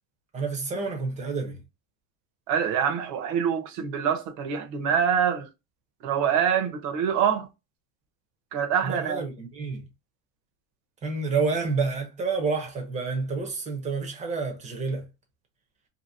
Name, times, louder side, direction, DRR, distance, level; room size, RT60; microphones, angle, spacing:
voice 1, 0.3-1.6 8.8-9.9 11.0-15.1, right 4 dB, 15° right, 0.7 m, -29 dB
voice 2, 2.5-5.5 6.0-7.5 8.5-9.2, right 8 dB, 50° right, 0.8 m, -25 dB
2.8 x 2.7 x 2.6 m
supercardioid pair, 155°, 46 cm